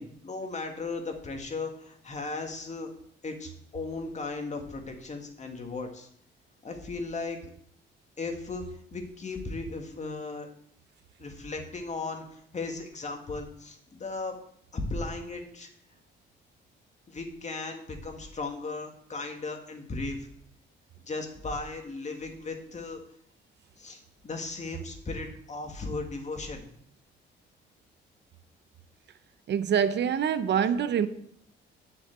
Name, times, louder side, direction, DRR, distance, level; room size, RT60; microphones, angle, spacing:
voice 1, 0.0-2.9 3.2-6.1 6.6-7.4 8.2-8.6 8.9-10.5 11.2-14.4 14.7-15.7 17.1-20.3 21.1-23.0 23.8-26.7, left 3 dB, 35° left, 2.1 m, -36 dB
voice 2, 29.5-31.1, right 8 dB, 60° right, 0.7 m, -25 dB
7.8 x 6.1 x 7.9 m
cardioid pair, 90°, 20 cm